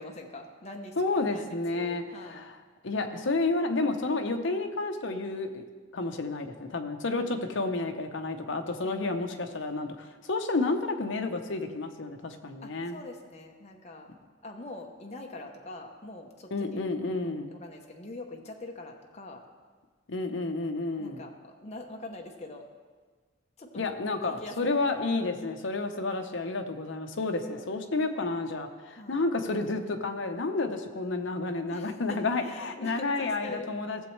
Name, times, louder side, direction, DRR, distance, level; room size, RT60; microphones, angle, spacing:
voice 1, 0.0-2.4 8.9-9.5 12.6-14.1 14.4-16.8 17.5-19.4 21.0-22.7 23.6-23.9 24.2-25.1 27.2-27.6 29.0-29.2 31.7-33.7, left 2 dB, 30° left, 1 dB, 0.8 m, -44 dB
voice 2, 1.0-2.6 2.8-5.6 5.9-13.0 16.5-17.5 20.1-21.2 23.7-34.0, left 3 dB, 60° left, 6 dB, 0.8 m, -30 dB
16.0 x 7.1 x 3.2 m, 1.5 s
head